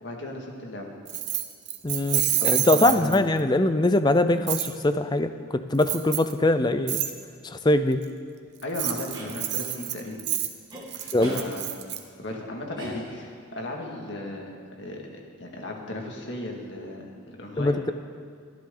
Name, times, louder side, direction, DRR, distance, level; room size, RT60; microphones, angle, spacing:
voice 1, 0.0-0.9 2.4-3.2 8.6-10.2 10.9-11.7 12.2-17.8, left 1 dB, 55° left, 0 dB, 2.0 m, -36 dB
Keys jangling, 1.1-3.4 4.5-4.7 5.8-6.3 6.9-7.1 8.6-12.0, right 12 dB, 50° right, 0.9 m, -28 dB
voice 2, 1.8-7.0 7.4-8.0 11.1-11.4 17.6-17.9, left 2 dB, 20° left, 10 dB, 0.5 m, -22 dB
sound 1, 9.1-9.4 10.7-10.8 11.2-11.4 12.8-13.4, equal, 20° right, 1.9 m, -38 dB
24.0 x 10.5 x 3.9 m, 2.1 s
head